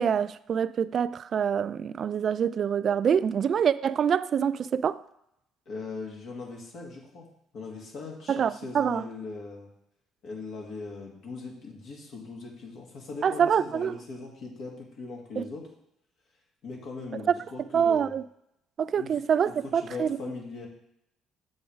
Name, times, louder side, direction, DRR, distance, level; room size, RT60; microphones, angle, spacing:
voice 1, 0.0-5.0 8.3-9.0 13.2-13.9 15.4-15.5 17.7-18.2 18.8-20.2, right 7 dB, 50° right, 0.3 m, -25 dB
voice 2, 5.7-7.3 7.5-9.7 10.2-15.7 16.6-18.2 18.9-19.1 19.4-20.7, left 3 dB, 65° left, 1.9 m, -40 dB
6.9 x 5.3 x 5.0 m
cardioid pair, 95°, 0 cm